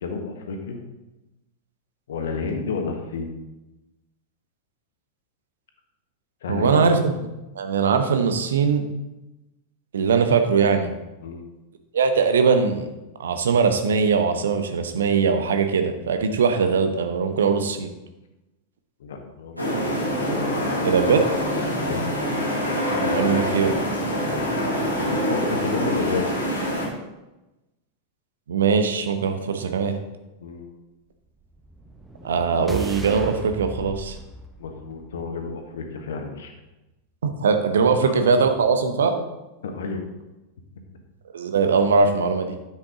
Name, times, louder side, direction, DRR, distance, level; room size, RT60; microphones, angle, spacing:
voice 1, 0.0-0.8 2.1-3.3 6.4-6.8 11.2-11.4 19.0-19.6 21.8-22.1 25.0-26.3 30.4-30.7 34.6-36.5 38.0-38.2 39.6-40.0, left 4 dB, 60° left, 4 dB, 1.4 m, -30 dB
voice 2, 6.5-7.2 7.5-8.8 9.9-10.9 11.9-12.9 13.2-17.9 20.8-21.3 23.0-23.7 28.5-30.0 32.2-34.2 37.2-39.2 41.3-42.6, right 5 dB, 65° right, 7 dB, 0.9 m, -21 dB
sound 1, 19.6-26.9, equal, 90° right, 2.7 m, -25 dB
sound 2, 31.5-35.7, right 1 dB, 5° right, 0.9 m, -37 dB
9.9 x 7.5 x 3.8 m, 1.0 s
figure-of-eight pair, 90°, 0 cm